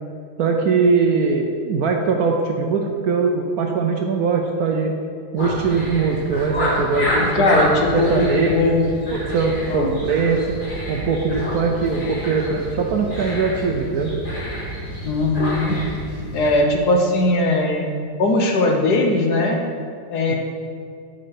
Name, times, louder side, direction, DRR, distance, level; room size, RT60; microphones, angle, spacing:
voice 1, 0.4-4.9 5.3-7.6 7.9-8.8 9.1-10.6 10.9-14.1 20.3-20.4, right 4 dB, 70° right, 2 dB, 0.9 m, -21 dB
sound 1, 5.4-16.6, equal, 25° left, 1.9 m, -28 dB
voice 2, 7.3-9.0 9.7-9.9 15.0-15.8 16.3-17.9 18.2-19.6 20.1-20.4, left 2 dB, 60° left, 1 dB, 1.3 m, -19 dB
7.9 x 5.5 x 5.9 m, 2.3 s
omnidirectional pair, 2.2 m